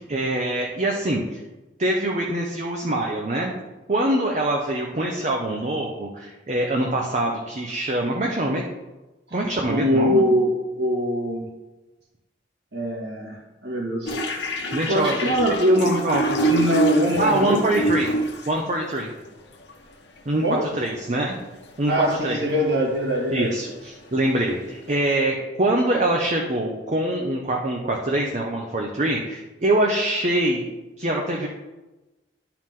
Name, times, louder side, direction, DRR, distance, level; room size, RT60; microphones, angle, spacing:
voice 1, 0.0-1.4 1.8-3.5 3.9-8.6 9.3-10.3 14.7-15.3 15.7-16.4 17.2-18.1 18.5-19.1 20.3-21.4 21.8-22.4 23.3-30.7 31.0-31.5, right 1 dB, 40° right, 0 dB, 0.8 m, -24 dB
voice 2, 9.7-11.4 12.7-14.2 14.9-15.8 16.4-17.7 20.4-20.7 21.9-23.5, equal, 65° right, -4 dB, 2.3 m, -22 dB
sound 1, 14.0-18.6 19.6-19.7 20.2-20.3 20.6-21.0 21.4-21.8 22.1-24.5, right 2 dB, 70° left, 1.1 m, -26 dB
11.0 x 4.7 x 3.7 m, 1.1 s
head